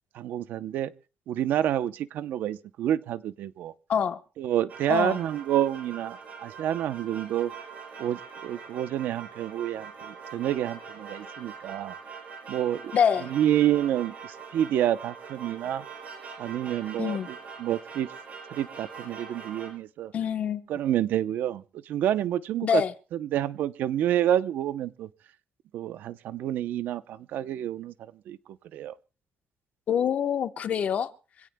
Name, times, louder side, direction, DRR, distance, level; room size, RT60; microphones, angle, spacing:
voice 1, 0.1-0.9 1.3-3.7 4.4-7.5 8.0-11.9 12.5-12.9 13.2-15.8 16.4-18.1 18.5-20.1 20.7-22.8 23.1-25.1 25.7-27.9 28.3-28.4 28.7-28.9, right 11 dB, 80° right, 0.7 m, -28 dB
voice 2, 3.9-4.2 4.9-5.2 12.9-13.3 17.0-17.3 20.1-20.6 22.6-22.9 29.9-31.1, left 8 dB, 50° left, 1.0 m, -25 dB
sound 1, 4.7-19.7, right 5 dB, 50° right, 6.2 m, -43 dB
26.0 x 17.0 x 2.2 m
cardioid pair, 150°, 3 cm